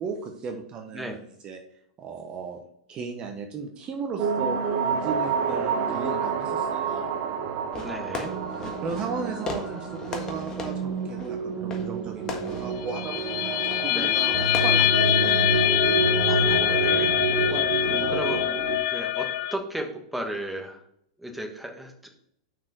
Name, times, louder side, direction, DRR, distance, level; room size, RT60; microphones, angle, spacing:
voice 1, 0.0-1.6 2.0-2.6 2.9-7.1 8.5-14.3 14.6-15.1 17.5-18.2, right 5 dB, 35° right, 4 dB, 1.1 m, -36 dB
sound 1, 4.2-18.8, right 5 dB, 50° right, 1.0 m, -28 dB
Fireworks, 7.7-15.8, left 3 dB, 25° left, 1.5 m, -39 dB
voice 2, 7.8-8.3 13.9-14.1 16.2-17.5 18.1-18.4 18.9-20.8 21.2-22.1, right 1 dB, 5° right, 3 dB, 1.4 m, -35 dB
sound 2, 12.9-19.5, left 14 dB, 65° left, 0.4 m, -24 dB
6.1 x 4.7 x 6.1 m, 0.71 s
hypercardioid pair, 110°, 3 cm